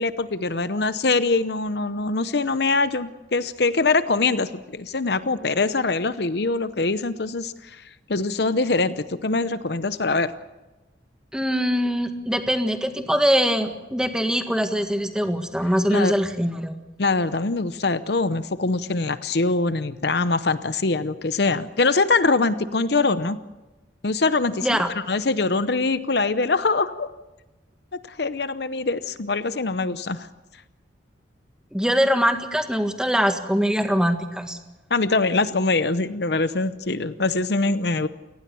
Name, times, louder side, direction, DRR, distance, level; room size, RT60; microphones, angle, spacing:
voice 1, 0.0-7.8 8.1-10.3 15.9-16.1 17.0-23.4 24.0-27.1 28.1-30.3 34.9-38.1, left 3 dB, 60° left, 13 dB, 0.8 m, -23 dB
voice 2, 11.3-16.7 24.6-24.9 31.7-34.6, equal, 5° right, 6 dB, 1.6 m, -22 dB
28.5 x 19.0 x 7.0 m, 1.1 s
head